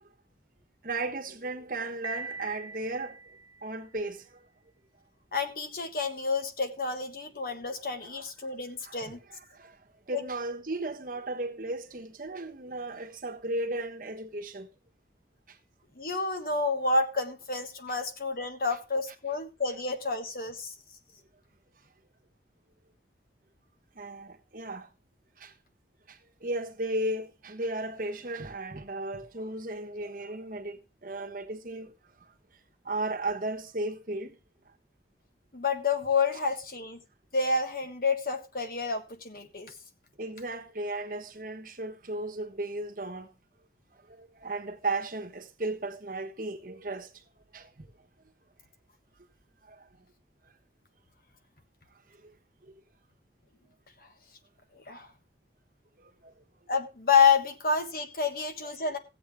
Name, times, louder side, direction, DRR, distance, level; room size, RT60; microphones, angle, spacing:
voice 1, 0.8-3.2 3.6-4.4 8.0-8.2 8.8-9.2 9.5-9.8 10.1-14.7 23.9-24.9 25.4-25.5 26.1-31.9 32.8-34.3 40.2-43.3 44.1-47.1 47.5-47.8 49.7-49.9 52.2-52.3 56.0-56.3 58.6-58.7, right 2 dB, 50° right, 1.3 m, -35 dB
Piano, 2.0-4.0, right 3 dB, 25° right, 0.9 m, -42 dB
voice 2, 5.3-9.2 10.1-10.2 16.0-20.7 35.5-37.0 37.3-39.7 54.7-55.1 56.7-59.0, left 4 dB, 55° left, 1.4 m, -29 dB
15.5 x 8.0 x 3.5 m
head